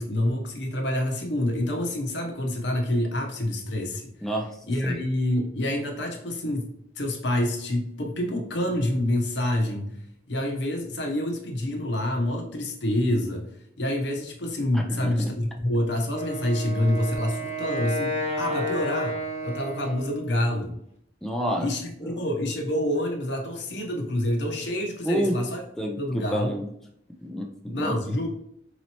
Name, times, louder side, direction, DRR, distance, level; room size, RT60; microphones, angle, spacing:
voice 1, 0.0-4.1 4.7-6.7 7.0-10.0 10.3-13.5 13.8-19.2 19.4-20.8 21.6-25.6 26.0-26.6 27.6-28.3, left 1 dB, 85° left, 3 dB, 0.8 m, -27 dB
voice 2, 4.2-5.0 14.7-15.3 21.2-21.7 25.0-25.5 25.8-26.7 27.2-28.0, equal, ahead, 1 dB, 0.3 m, -29 dB
Wind instrument woodwind instrument, 16.1-20.4, equal, 40° left, 0.8 m, -31 dB
4.0 x 3.0 x 2.8 m, 0.73 s
head